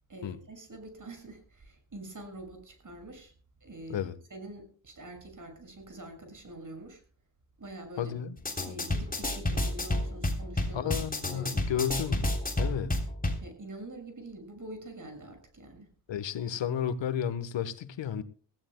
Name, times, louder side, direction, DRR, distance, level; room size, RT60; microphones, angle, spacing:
voice 1, 0.1-3.3 3.6-4.0 4.3-7.0 7.6-8.2 8.6-10.9 11.2-11.7 13.4-15.9, right 2 dB, 45° right, 6.3 m, -45 dB
voice 2, 8.0-8.4 10.7-12.3 12.6-13.0 16.1-18.2, left 8 dB, 85° left, 1.3 m, -32 dB
sound 1, 8.4-13.4, left 1 dB, 20° left, 3.3 m, -30 dB
21.0 x 15.5 x 2.2 m
cardioid pair, 65°, 43 cm